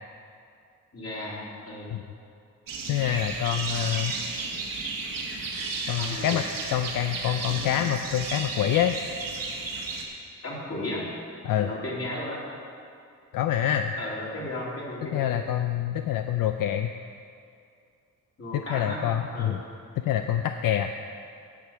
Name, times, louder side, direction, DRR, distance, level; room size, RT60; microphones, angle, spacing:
voice 1, 0.9-1.9 6.0-6.3 10.4-11.1 11.6-12.4 14.0-15.3 18.4-19.0 19.3-19.6, left 1 dB, 45° left, -5 dB, 2.9 m, -34 dB
sound 1, 2.7-10.1, right 3 dB, 80° right, 1.6 m, -33 dB
voice 2, 2.9-4.2 5.9-6.4 6.7-8.9 11.4-11.7 13.3-13.9 15.1-16.9 18.5-19.6 20.0-20.9, left 10 dB, 80° left, 7 dB, 0.5 m, -26 dB
11.0 x 7.0 x 5.7 m, 2.4 s
cardioid pair, 105°, 33 cm